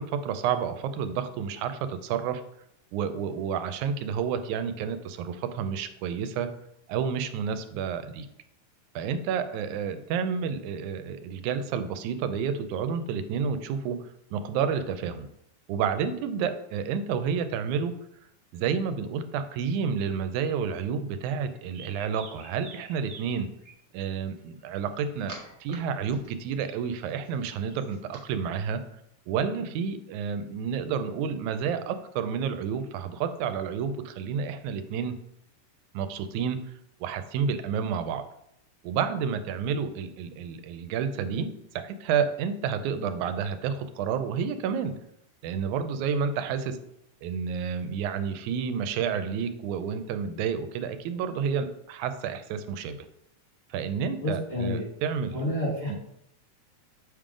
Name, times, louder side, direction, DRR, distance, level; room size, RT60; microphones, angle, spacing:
voice 1, 0.0-2.4 2.9-6.5 6.9-8.3 9.0-14.0 14.3-15.3 15.7-18.0 18.5-23.5 23.9-25.3 25.6-28.8 29.3-35.2 35.9-36.6 37.0-38.2 38.8-44.9 45.4-46.8 47.2-53.0 53.7-55.4 55.9-56.0, right 6 dB, 85° right, 10 dB, 2.0 m, -30 dB
sound 1, 21.5-23.7 24.6-25.7 26.1-28.2, right 3 dB, 60° right, 0.7 m, -47 dB
voice 2, 54.2-54.8 55.3-56.0, left 1 dB, 45° left, -7 dB, 0.8 m, -29 dB
7.1 x 3.7 x 4.9 m, 0.76 s
omnidirectional pair, 3.4 m